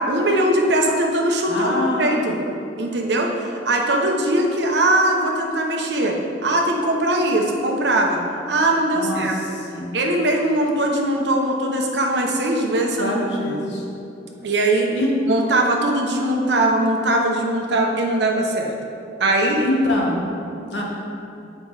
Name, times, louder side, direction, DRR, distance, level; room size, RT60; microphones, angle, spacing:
voice 1, 0.1-2.4 2.8-3.3 3.6-6.2 6.4-8.2 8.5-9.3 9.9-13.2 13.5-13.6 14.4-14.9 15.3-18.7 19.2-19.6, right 1 dB, 65° right, 1 dB, 0.9 m, -20 dB
voice 2, 1.5-2.4 8.9-9.9 13.0-13.8 14.9-15.1 19.6-20.2 20.7-20.8, left 1 dB, 70° left, -3 dB, 1.5 m, -24 dB
7.6 x 5.3 x 4.8 m, 2.7 s
head